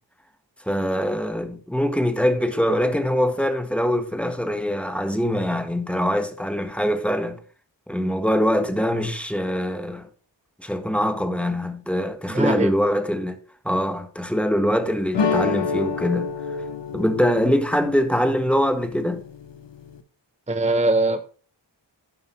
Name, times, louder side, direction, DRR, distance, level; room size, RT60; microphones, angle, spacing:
voice 1, 0.6-7.4 7.9-10.1 10.6-13.4 13.6-16.3 16.9-19.2, equal, 5° left, 1.4 m, -23 dB
voice 2, 12.3-12.7 20.5-21.3, right 2 dB, 15° right, 0.6 m, -21 dB
sound 1, 15.1-20.0, left 4 dB, 65° left, 1.0 m, -29 dB
11.5 x 5.4 x 4.5 m
wide cardioid pair, 55°, 46 cm